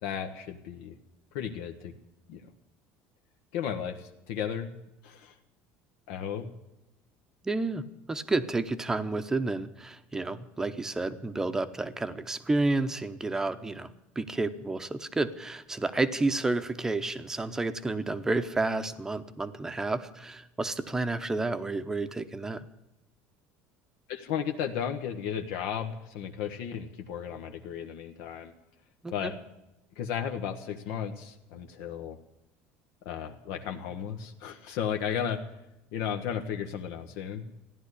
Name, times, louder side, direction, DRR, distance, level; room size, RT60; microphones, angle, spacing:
voice 1, 0.0-1.0 1.3-1.9 2.3-2.4 3.5-4.7 5.0-5.3 6.1-6.5 24.1-28.5 29.1-29.4 30.0-32.2 33.0-35.4 35.9-37.6, left 8 dB, 70° left, 5 dB, 1.3 m, -34 dB
voice 2, 7.4-7.8 8.1-22.7 29.0-29.3, right 2 dB, 10° right, 10 dB, 0.8 m, -30 dB
15.0 x 11.0 x 8.3 m, 0.92 s
cardioid pair, 155°, 5 cm